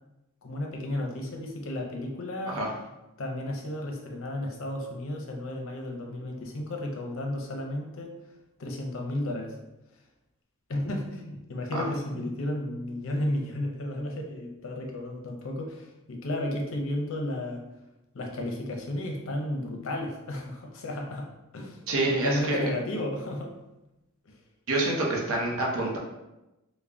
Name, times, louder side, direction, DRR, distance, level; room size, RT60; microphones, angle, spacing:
voice 1, 0.4-2.6 3.2-8.1 8.6-9.5 10.7-17.6 18.1-21.3 21.5-23.5 24.2-24.3, left 1 dB, 65° left, 1 dB, 0.6 m, -33 dB
voice 2, 21.9-22.7 24.7-26.0, right 2 dB, 70° right, -1 dB, 0.7 m, -27 dB
3.6 x 2.1 x 3.4 m, 0.96 s
head